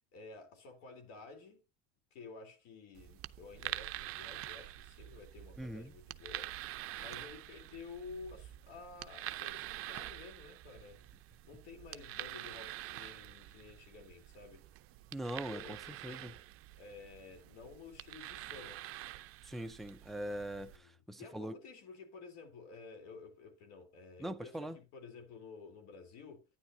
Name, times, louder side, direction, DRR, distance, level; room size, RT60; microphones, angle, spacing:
voice 1, 0.1-1.6 2.1-6.5 7.0-11.1 11.4-14.6 15.5-16.4 16.8-18.8 20.7-26.5, left 4 dB, 60° left, 3.6 m, -52 dB
sound 1, 2.9-20.8, right 15 dB, 45° right, 0.6 m, -47 dB
voice 2, 5.6-5.9 15.1-15.8 16.0-16.3 19.4-21.5 24.2-24.8, right 1 dB, ahead, 0.5 m, -41 dB
11.5 x 9.9 x 2.7 m
supercardioid pair, 110°, 31 cm